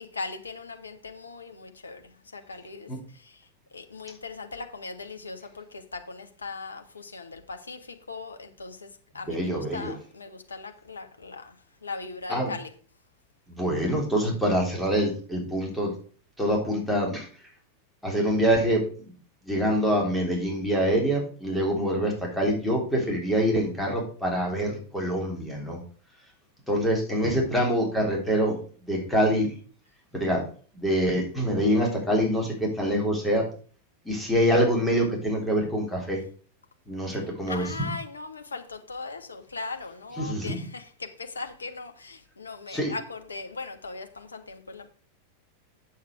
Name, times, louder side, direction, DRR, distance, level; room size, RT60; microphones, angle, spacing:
voice 1, 0.0-2.0 2.3-2.9 3.2-3.3 3.7-7.8 8.1-8.9 9.1-11.5 11.8-12.7 37.5-44.9, left 4 dB, 75° left, 1.4 m, -39 dB
voice 2, 9.3-9.9 12.3-12.5 13.5-15.9 16.4-17.3 18.0-18.8 19.4-25.8 26.7-28.6 28.9-29.5 30.1-30.5 30.7-33.5 34.1-36.2 36.9-37.8 40.2-40.6 42.7-43.0, equal, 5° left, 3.5 m, -25 dB
8.5 x 7.4 x 4.6 m
figure-of-eight pair, 90°, 0 cm